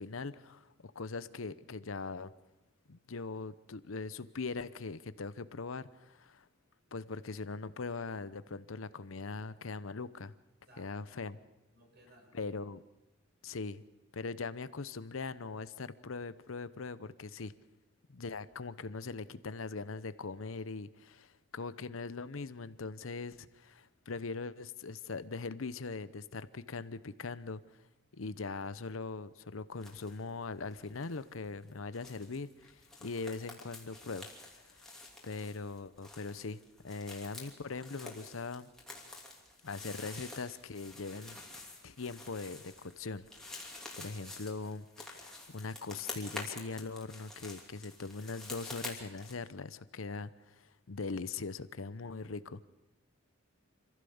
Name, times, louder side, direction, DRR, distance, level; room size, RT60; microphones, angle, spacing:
voice 1, 0.0-2.3 2.9-6.5 6.9-10.3 10.8-11.4 12.3-12.8 13.4-13.8 14.1-17.5 18.1-27.8 28.1-34.3 34.5-35.0 35.2-38.7 39.6-41.4 41.8-52.6, left 4 dB, 85° left, 15 dB, 0.8 m, -41 dB
voice 2, 10.7-11.4 11.7-12.5 52.1-52.5, right 1 dB, 50° right, 1 dB, 6.0 m, -62 dB
sound 1, 29.8-30.2 30.5-49.3, left 2 dB, 5° left, 2.9 m, -48 dB
26.0 x 15.5 x 7.1 m, 0.98 s
head